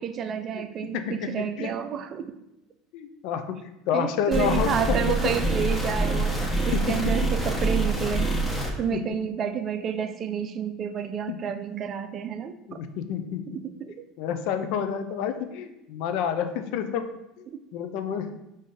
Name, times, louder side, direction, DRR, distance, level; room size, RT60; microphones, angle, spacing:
voice 1, 0.0-2.4 3.9-6.4 6.7-8.4 8.8-12.8 13.5-14.0 17.5-17.6, right 8 dB, 45° right, 9 dB, 0.4 m, -30 dB
voice 2, 0.9-1.7 2.9-5.0 6.7-7.0 7.2-7.3 8.9-9.0 11.3-11.4 12.7-13.4 14.2-17.1 17.4-17.5 17.7-18.3, left 8 dB, 65° left, 8 dB, 0.4 m, -29 dB
sound 1, 4.3-8.7, right 2 dB, 5° left, 1.0 m, -26 dB
5.1 x 2.6 x 3.6 m, 0.90 s
hypercardioid pair, 85°, 0 cm